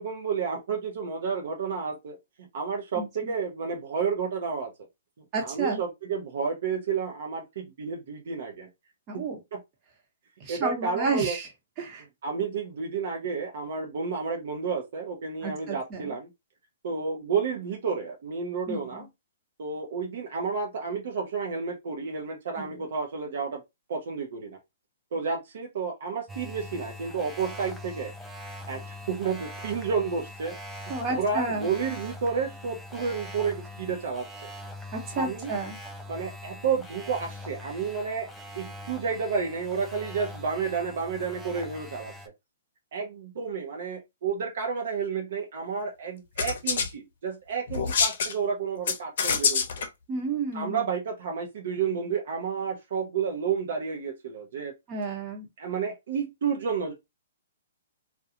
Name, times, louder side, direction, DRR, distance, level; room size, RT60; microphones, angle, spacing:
voice 1, 0.0-4.7 5.4-8.7 9.1-9.3 9.5-9.6 10.5-11.4 12.2-16.3 16.8-19.1 19.6-23.6 23.9-24.6 25.1-28.1 28.7-28.8 29.1-30.6 31.1-34.5 35.1-35.5 36.1-38.3 38.5-42.1 42.9-49.6 50.5-54.7 55.6-56.9, right 5 dB, 65° right, 0.7 m, -31 dB
voice 2, 2.9-3.3 5.3-5.8 9.1-9.4 10.4-11.5 11.8-12.0 15.4-16.2 18.7-19.0 22.6-22.8 30.9-31.7 34.9-35.8 50.1-50.9 54.9-55.5, right 3 dB, 30° right, 1.0 m, -31 dB
sound 1, 26.3-42.3, left 1 dB, ahead, 0.4 m, -42 dB
sound 2, 46.4-46.9 47.7-48.3 48.9-49.9, left 6 dB, 60° left, 0.6 m, -25 dB
2.4 x 2.3 x 2.8 m
hypercardioid pair, 140°, 0 cm